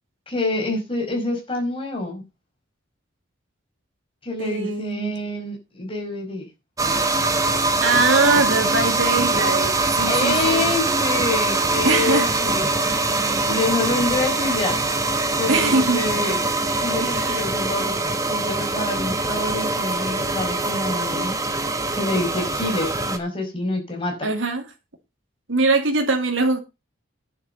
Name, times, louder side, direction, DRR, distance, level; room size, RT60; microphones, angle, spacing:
voice 1, 0.3-2.2 4.2-6.5 10.1-14.8 15.4-16.5 16.8-21.3 21.9-24.3, left 2 dB, 25° left, 5.3 m, -27 dB
voice 2, 4.4-5.2 7.8-10.7 11.8-12.3 15.5-16.0 17.0-17.4 24.2-24.6 25.5-26.6, right 3 dB, 80° right, 2.5 m, -22 dB
sound 1, 6.8-23.2, right 3 dB, 15° right, 1.3 m, -23 dB
11.0 x 7.0 x 6.5 m
head